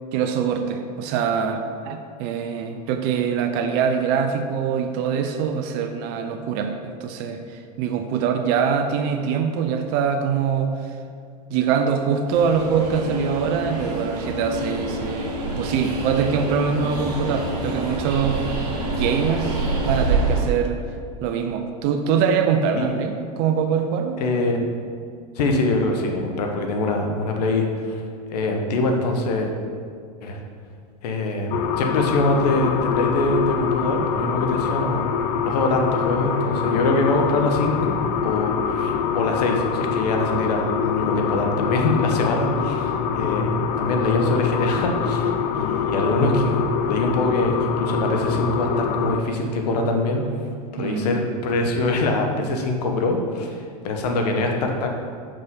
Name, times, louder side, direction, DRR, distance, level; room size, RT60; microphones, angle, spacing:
voice 1, 0.1-10.7 11.5-18.6 19.0-20.8 21.2-24.2 50.8-51.1, right 6 dB, 55° right, 6 dB, 0.6 m, -23 dB
Train, 12.3-20.4, right 2 dB, 80° right, 1.5 m, -27 dB
voice 2, 24.2-24.7 25.4-28.0 28.3-29.5 30.2-30.4 31.0-35.1 35.4-43.5 43.8-50.2 50.8-54.9, left 2 dB, 80° left, 3 dB, 0.9 m, -23 dB
sound 1, 31.5-49.2, left 7 dB, 50° left, 0.4 m, -24 dB
5.6 x 5.0 x 3.6 m, 2.3 s
supercardioid pair, 115°, 20 cm